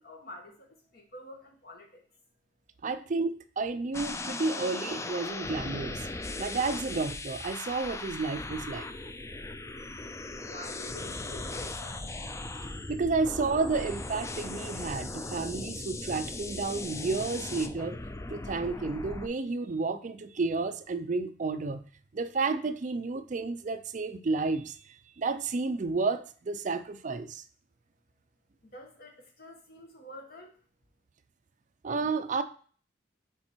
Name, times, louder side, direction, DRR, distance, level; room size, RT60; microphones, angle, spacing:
voice 1, 0.0-2.0 10.4-12.1 28.6-30.6, left 1 dB, 55° left, 2 dB, 1.6 m, -48 dB
voice 2, 2.8-6.1 6.4-8.9 12.9-18.0 18.3-21.8 22.1-27.4 31.8-32.4, right 3 dB, 45° right, 11 dB, 0.4 m, -31 dB
sound 1, 3.9-19.3, left 2 dB, 15° left, 0.4 m, -38 dB
6.8 x 4.3 x 4.4 m, 0.44 s
head